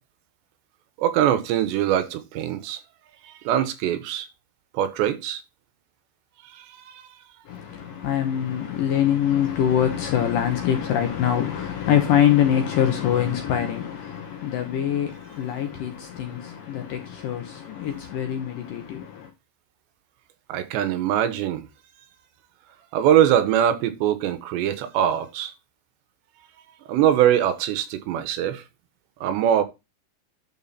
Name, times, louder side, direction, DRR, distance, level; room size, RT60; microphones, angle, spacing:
voice 1, 1.0-2.8 3.2-4.3 4.7-5.4 6.5-7.1 20.5-21.7 22.9-25.5 26.9-28.6 29.2-29.6, right 10 dB, 80° right, 3.2 m, -22 dB
voice 2, 7.5-19.3, left 10 dB, 70° left, 2.2 m, -24 dB
11.5 x 4.3 x 4.2 m
omnidirectional pair, 5.1 m